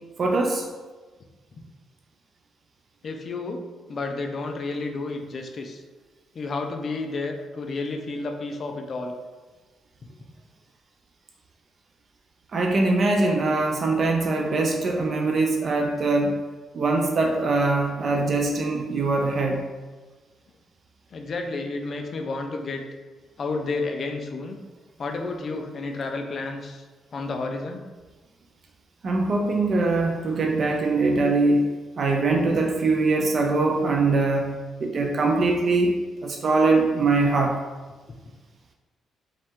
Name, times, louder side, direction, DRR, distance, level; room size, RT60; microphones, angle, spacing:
voice 1, 0.2-0.6 12.5-16.3 16.7-19.6 29.0-31.6 32.0-34.5 34.8-37.6, right 3 dB, 35° right, 1 dB, 0.4 m, -22 dB
voice 2, 3.0-3.6 3.9-5.8 6.3-9.1 21.1-22.8 23.4-24.6 25.0-26.8 27.1-27.9, left 3 dB, 35° left, 4 dB, 0.4 m, -31 dB
5.2 x 2.3 x 3.6 m, 1.3 s
cardioid pair, 165°, 0 cm